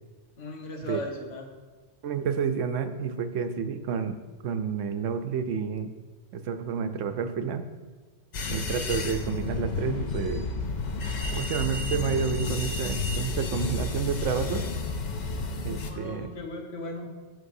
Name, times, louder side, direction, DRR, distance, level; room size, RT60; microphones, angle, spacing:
voice 1, 0.4-1.5 15.8-17.1, left 2 dB, 85° left, 1 dB, 1.5 m, -37 dB
voice 2, 2.0-4.2 4.4-5.9 6.3-7.7 8.5-10.5 11.3-14.7 15.6-16.3, right 6 dB, 90° right, 9 dB, 1.0 m, -30 dB
sound 1, 8.3-15.9, left 3 dB, 45° left, 0.6 m, -31 dB
14.0 x 5.3 x 2.7 m, 1.3 s
omnidirectional pair, 1.2 m